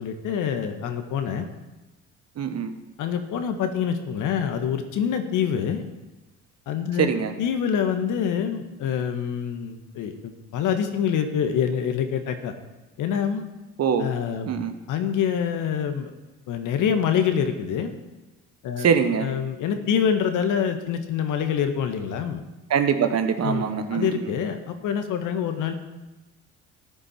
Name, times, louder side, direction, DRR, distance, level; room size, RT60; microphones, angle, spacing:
voice 1, 0.0-1.5 3.0-5.8 6.7-7.1 7.4-12.5 13.0-13.4 14.0-14.5 14.9-16.1 16.5-17.9 18.6-18.9 19.2-22.4 23.4-25.7, left 8 dB, 55° left, 7 dB, 1.5 m, -26 dB
voice 2, 2.4-2.7 7.0-7.4 13.8-14.1 14.5-14.7 18.8-19.3 22.7-24.3, right 7 dB, 45° right, 8 dB, 1.3 m, -23 dB
14.0 x 9.6 x 4.5 m, 1.1 s
hypercardioid pair, 55°, 36 cm